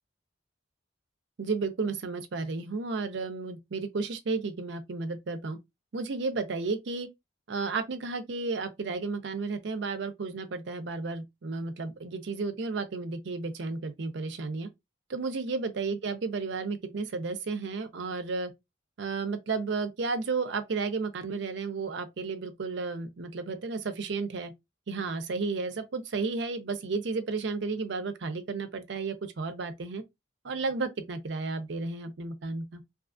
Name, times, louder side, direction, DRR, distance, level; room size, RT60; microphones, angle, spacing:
voice 1, 1.4-5.6 5.9-7.1 7.5-14.7 15.1-18.5 19.0-24.5 24.9-30.0 30.4-32.8, right 4 dB, 60° right, 0.5 m, -33 dB
2.6 x 2.4 x 2.4 m
head